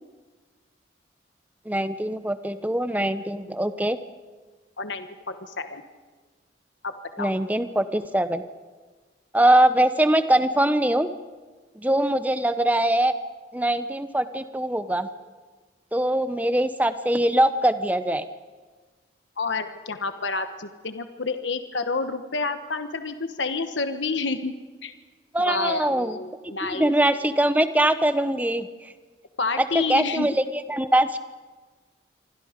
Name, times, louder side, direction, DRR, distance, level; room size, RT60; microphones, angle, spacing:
voice 1, 1.7-4.0 7.2-8.4 9.3-11.1 11.8-13.1 13.5-15.1 15.9-18.2 25.3-26.2 26.4-28.9 29.6-31.2, right 1 dB, 10° right, 11 dB, 0.8 m, -22 dB
voice 2, 4.8-5.8 6.8-7.3 19.4-24.5 24.8-24.9 25.4-26.9 29.4-30.3, left 3 dB, 80° left, 8 dB, 1.3 m, -29 dB
27.0 x 24.0 x 5.2 m, 1.4 s
head